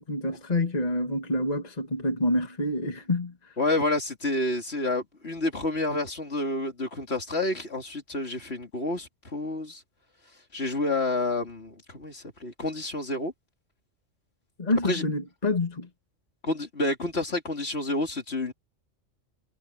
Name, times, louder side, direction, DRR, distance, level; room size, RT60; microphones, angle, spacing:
voice 1, 0.0-3.5 14.6-15.9, left 1 dB, 30° left, 2.2 m, -27 dB
voice 2, 3.6-9.8 10.5-13.3 14.8-15.0 16.4-18.5, left 2 dB, 55° left, 3.3 m, -29 dB
omnidirectional pair, 1.3 m